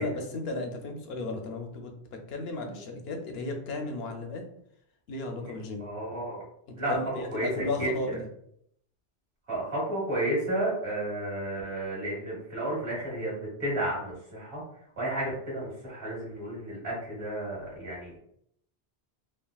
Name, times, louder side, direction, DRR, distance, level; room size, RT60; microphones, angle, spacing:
voice 1, 0.0-4.4 5.1-5.9 6.7-8.2, left 2 dB, 75° left, 3 dB, 0.8 m, -35 dB
voice 2, 5.8-6.4 6.7-6.9 7.3-8.2 9.5-14.6 15.0-18.1, right 1 dB, 60° right, -5 dB, 1.5 m, -32 dB
3.4 x 2.1 x 2.2 m, 0.71 s
omnidirectional pair, 1.1 m